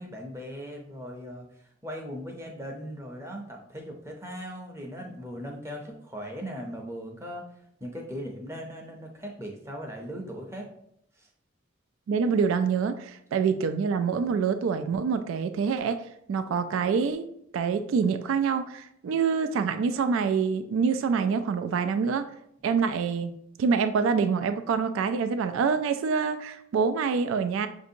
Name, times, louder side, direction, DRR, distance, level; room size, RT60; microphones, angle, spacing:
voice 1, 0.0-7.4 7.8-10.7 11.2-11.3, equal, 15° right, 1 dB, 0.6 m, -39 dB
voice 2, 12.1-16.0 16.3-17.3 17.5-22.3 22.6-23.3 23.6-27.7, right 5 dB, 80° right, 10 dB, 0.3 m, -26 dB
5.9 x 2.6 x 2.6 m, 0.74 s
head